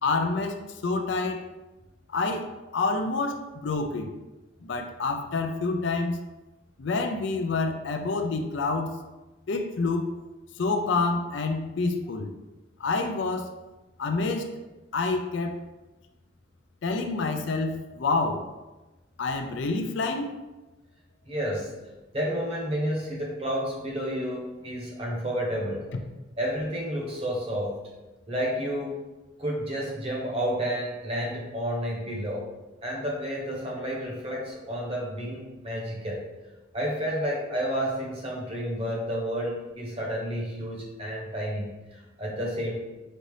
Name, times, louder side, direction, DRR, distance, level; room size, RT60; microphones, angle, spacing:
voice 1, 0.0-1.5 2.1-4.1 4.6-6.2 6.8-9.0 9.5-10.1 10.6-12.3 12.8-13.5 14.0-14.5 14.9-15.6 16.8-18.4 19.2-20.3, left 3 dB, 65° left, 6 dB, 0.4 m, -28 dB
voice 2, 21.3-21.7 22.1-25.9 26.4-27.8 28.3-29.0 29.4-32.5 32.8-36.2 36.7-42.7, equal, 30° right, -3 dB, 0.9 m, -30 dB
5.2 x 2.7 x 3.1 m, 1.1 s
head